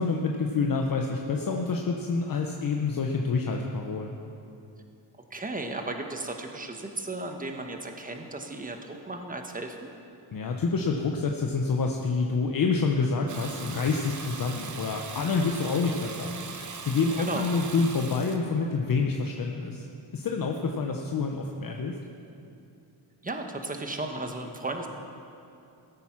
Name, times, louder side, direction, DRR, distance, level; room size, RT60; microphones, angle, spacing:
voice 1, 0.0-4.1 10.3-16.3 16.8-19.9 20.1-22.0, left 4 dB, 45° left, 2 dB, 1.0 m, -27 dB
voice 2, 5.3-9.9 17.2-17.5 23.2-24.9, right 2 dB, 20° right, 4 dB, 1.3 m, -35 dB
Water tap faucet / Bathtub (filling or washing), 13.3-18.4, right 5 dB, 40° right, 1.2 m, -40 dB
15.5 x 8.6 x 6.0 m, 2.6 s
cardioid pair, 90°, 45 cm